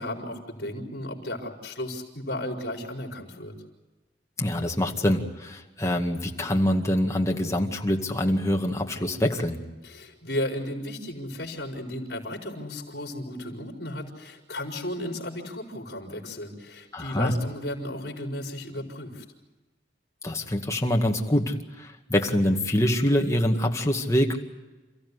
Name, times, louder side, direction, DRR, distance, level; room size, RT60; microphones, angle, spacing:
voice 1, 0.0-3.5 9.8-19.2, left 1 dB, 65° left, 1 dB, 5.0 m, -34 dB
voice 2, 4.4-9.6 16.9-17.3 20.2-24.4, equal, 15° left, 2 dB, 2.1 m, -25 dB
29.0 x 15.0 x 9.8 m, 1.2 s
head